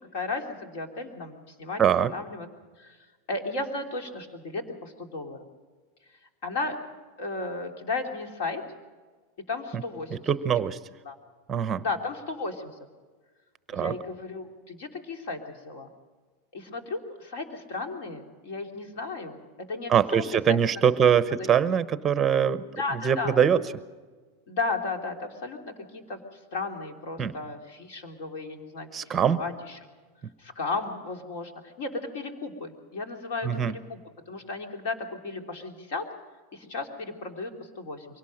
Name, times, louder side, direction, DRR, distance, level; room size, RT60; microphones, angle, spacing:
voice 1, 0.1-2.5 2.8-3.0 3.3-5.4 6.4-6.8 7.2-8.6 9.5-10.2 11.0-11.1 11.8-12.7 13.7-15.9 16.5-19.4 19.7-20.6 22.8-23.4 24.5-29.8 30.4-34.0 34.3-36.1 36.5-38.1, left 3 dB, 60° left, 4 dB, 3.3 m, -34 dB
voice 2, 1.8-2.1 9.7-9.8 10.3-10.8 11.5-11.8 13.7-14.0 19.9-23.6 27.2-27.3 28.9-29.4 33.4-33.8, right 8 dB, 20° right, 14 dB, 0.8 m, -23 dB
23.5 x 18.0 x 6.5 m, 1.4 s
supercardioid pair, 155°, 0 cm